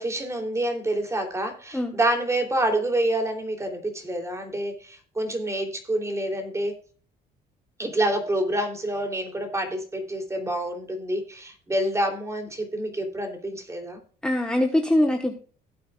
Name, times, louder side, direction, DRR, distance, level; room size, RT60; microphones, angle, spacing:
voice 1, 0.0-6.7 7.8-14.0, right 1 dB, 15° right, 3.1 m, -27 dB
voice 2, 14.2-15.3, left 1 dB, 5° left, 1.2 m, -22 dB
17.0 x 8.5 x 2.4 m
cardioid pair, 110°, 17 cm